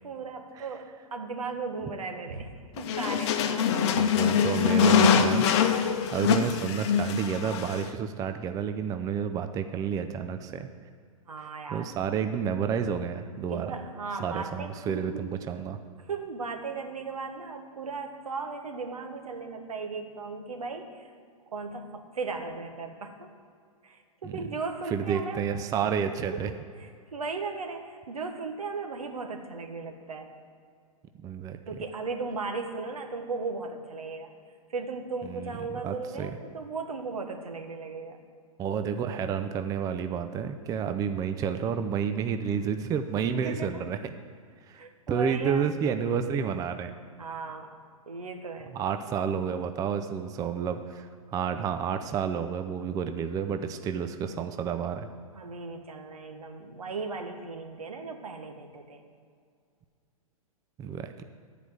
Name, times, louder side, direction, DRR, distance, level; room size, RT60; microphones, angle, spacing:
voice 1, 0.0-3.8 11.3-11.9 13.5-15.3 16.0-21.1 21.5-23.3 23.8-25.5 26.5-30.3 31.7-34.3 34.7-38.2 43.3-43.8 44.7-45.8 47.2-47.8 48.1-48.7 55.3-59.0, right 4 dB, 80° right, 4 dB, 1.5 m, -37 dB
sound 1, 2.8-7.9, left 7 dB, 50° left, 0.9 m, -24 dB
voice 2, 4.0-10.7 11.7-13.7 14.2-15.8 24.2-24.3 24.9-26.5 31.2-31.6 35.3-35.5 35.8-36.3 38.6-44.1 44.7-46.9 48.7-55.1 60.8-61.2, right 7 dB, 20° right, 8 dB, 0.5 m, -30 dB
12.0 x 5.0 x 7.8 m, 2.2 s
hypercardioid pair, 115°, 18 cm